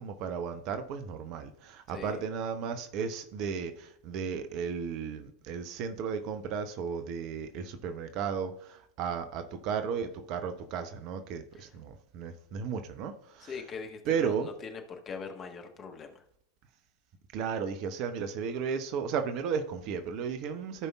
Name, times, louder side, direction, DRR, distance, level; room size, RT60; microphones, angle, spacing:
voice 1, 0.0-13.5 14.1-14.5 17.3-20.9, right 6 dB, 40° right, 8 dB, 0.8 m, -34 dB
voice 2, 13.4-16.2, left 5 dB, 25° left, 5 dB, 1.3 m, -42 dB
15.0 x 5.2 x 2.4 m, 0.70 s
figure-of-eight pair, 90°, 0 cm